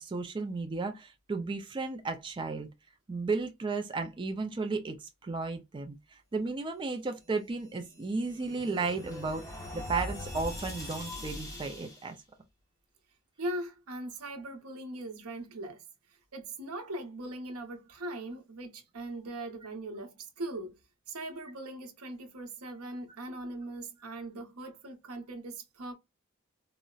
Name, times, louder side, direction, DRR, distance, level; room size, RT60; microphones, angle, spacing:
voice 1, 0.0-2.7 3.1-9.5 9.7-12.2, right 3 dB, 20° right, 0.3 m, -34 dB
sound 1, 7.6-12.1, left 1 dB, 15° left, 1.0 m, -41 dB
voice 2, 13.4-15.8 16.1-20.8 21.1-25.9, right 1 dB, 80° right, 0.8 m, -40 dB
3.8 x 2.0 x 2.3 m
head